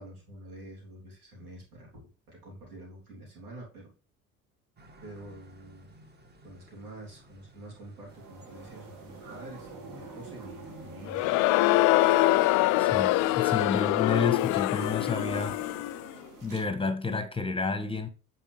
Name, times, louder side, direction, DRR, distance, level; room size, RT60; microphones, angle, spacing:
voice 1, 0.0-2.0 2.3-3.9 5.0-5.9 6.4-11.4, right 1 dB, 85° right, 3.2 m, -47 dB
sound 1, 4.8-15.7, equal, 25° right, 1.8 m, -55 dB
sound 2, 8.1-16.6, right 4 dB, 45° right, 2.6 m, -47 dB
Crowd, 11.1-16.1, left 18 dB, 50° left, 0.4 m, -24 dB
voice 2, 12.7-15.6 16.4-18.1, left 4 dB, 10° left, 1.3 m, -30 dB
9.0 x 4.7 x 3.3 m
hypercardioid pair, 60°, 43 cm